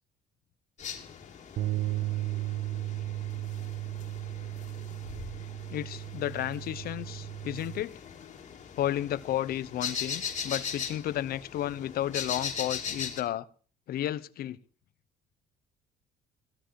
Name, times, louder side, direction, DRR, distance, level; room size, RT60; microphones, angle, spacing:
sound 1, 0.8-13.2, left 7 dB, 45° left, 2.9 m, -40 dB
sound 2, 1.6-7.8, right 16 dB, 65° right, 1.0 m, -35 dB
voice 1, 5.7-8.0 8.8-13.5 13.9-14.6, left 12 dB, 65° left, 0.9 m, -32 dB
16.5 x 12.5 x 4.7 m
cardioid pair, 110°, 17 cm